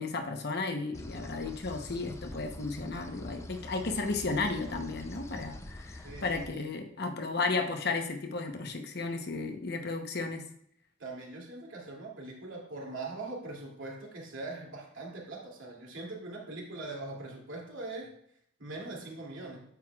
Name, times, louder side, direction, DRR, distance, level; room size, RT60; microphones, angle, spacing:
voice 1, 0.0-10.4, left 3 dB, 55° left, 5 dB, 0.9 m, -34 dB
sound 1, 0.9-6.5, left 1 dB, 15° left, 0.5 m, -45 dB
voice 2, 6.0-6.7 11.0-18.1 18.6-19.6, right 2 dB, 85° right, -3 dB, 2.6 m, -42 dB
9.2 x 7.9 x 2.4 m, 0.70 s
head